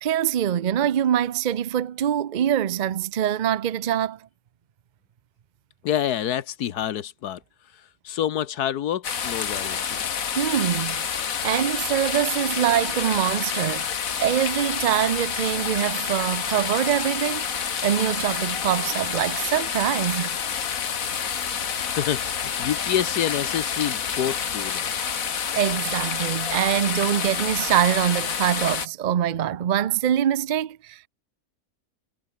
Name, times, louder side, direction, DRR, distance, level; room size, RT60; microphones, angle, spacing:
voice 1, 0.0-4.2 10.4-17.4 17.8-20.4 25.6-31.1, right 10 dB, 75° right, 0.4 m, -24 dB
voice 2, 5.8-7.4 8.0-10.0 22.0-25.0 25.5-25.6, left 10 dB, 90° left, 1.5 m, -27 dB
sound 1, 9.0-28.9, left 7 dB, 60° left, 1.8 m, -28 dB
omnidirectional pair, 1.6 m